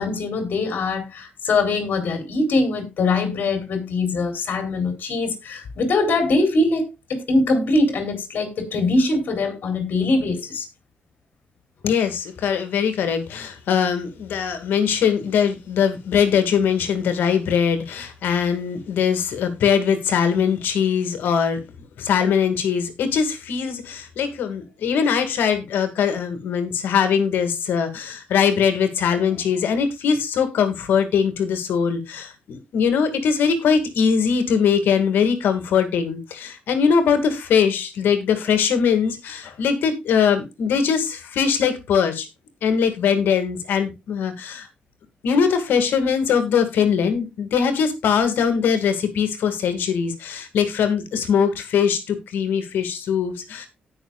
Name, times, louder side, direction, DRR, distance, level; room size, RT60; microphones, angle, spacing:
voice 1, 0.0-10.7, left 2 dB, 70° left, 4.0 m, -22 dB
voice 2, 11.8-21.6 22.0-42.3 42.6-44.7 45.2-53.7, left 7 dB, 90° left, 2.3 m, -21 dB
18.0 x 6.2 x 2.4 m
cardioid pair, 85°, 3 cm